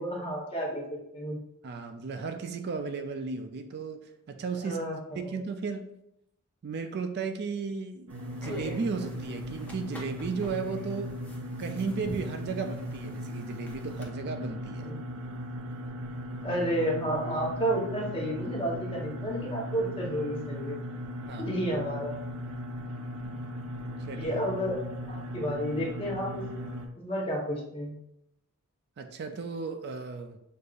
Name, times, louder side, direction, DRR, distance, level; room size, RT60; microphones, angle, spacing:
voice 1, 0.0-1.4 4.6-5.4 14.8-15.0 16.4-20.8 21.4-22.1 24.2-24.8 25.1-26.7 27.0-27.9, equal, 25° left, -3 dB, 1.1 m, -31 dB
voice 2, 1.6-4.8 5.2-5.9 6.6-8.1 8.4-11.1 11.6-14.9 21.3-21.6 24.1-24.4 29.0-30.4, right 4 dB, 50° right, 7 dB, 0.3 m, -35 dB
sound 1, 8.1-14.1, equal, 5° left, 0.6 m, -45 dB
sound 2, 8.1-26.9, equal, 85° right, 0.6 m, -38 dB
6.4 x 2.6 x 2.5 m, 0.80 s
head